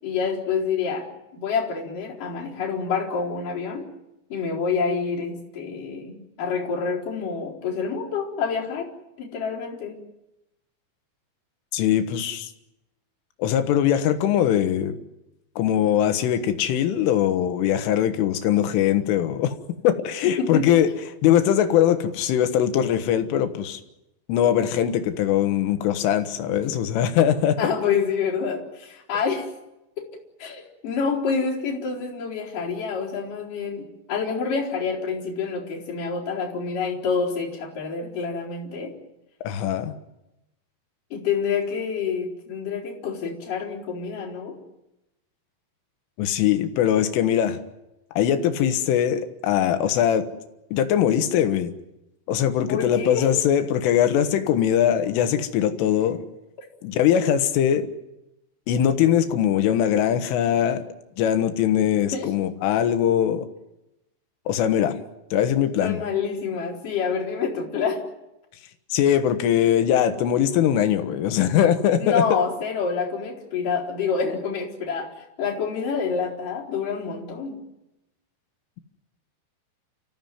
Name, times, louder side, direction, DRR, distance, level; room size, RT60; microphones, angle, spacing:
voice 1, 0.0-3.9 4.3-8.9 9.2-10.0 20.2-20.7 27.6-29.5 30.0-30.1 30.4-38.9 41.1-44.6 52.7-53.3 62.1-62.3 65.8-68.0 72.0-77.6, left 5 dB, 40° left, -4 dB, 5.5 m, -27 dB
voice 2, 11.7-12.5 13.4-15.0 15.6-19.6 19.8-20.9 21.2-23.8 24.3-27.6 39.5-40.0 46.2-47.6 48.2-50.3 50.7-51.7 52.3-56.2 56.8-57.9 58.7-60.8 61.2-63.5 64.5-65.0 65.3-66.0 68.9-72.2, left 10 dB, 75° left, 9 dB, 3.8 m, -21 dB
30.0 x 15.0 x 9.3 m, 0.92 s
omnidirectional pair, 5.9 m